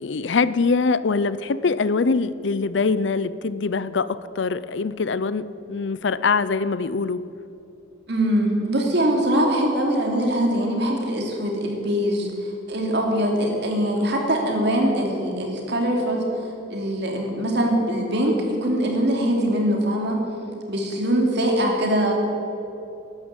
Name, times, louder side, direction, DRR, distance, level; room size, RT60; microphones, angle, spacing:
voice 1, 0.0-7.3, left 4 dB, 65° left, 16 dB, 0.5 m, -23 dB
voice 2, 8.1-20.2 20.7-22.1, equal, 60° right, 1 dB, 3.0 m, -22 dB
13.5 x 11.5 x 8.3 m, 2.8 s
head